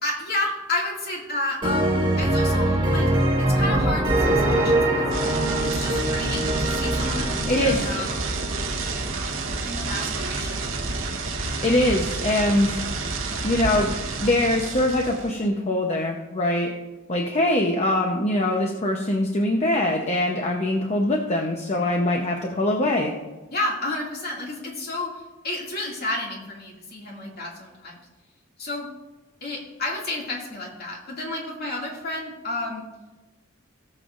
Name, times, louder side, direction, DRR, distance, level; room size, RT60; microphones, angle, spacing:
voice 1, 0.0-3.1 3.4-5.1 5.6-8.2 9.6-10.6 23.5-28.0 28.6-28.9 29.4-32.8, left 2 dB, 50° left, -2 dB, 2.3 m, -31 dB
sound 1, 1.6-9.2, right 1 dB, 25° right, 1.5 m, -23 dB
sound 2, 5.1-15.4, right 3 dB, 75° right, 1.1 m, -29 dB
voice 2, 7.5-8.0 11.6-12.8 13.4-13.9 14.2-16.7 17.1-23.1, left 1 dB, 35° left, 1 dB, 0.9 m, -23 dB
18.0 x 7.1 x 2.5 m, 1.1 s
head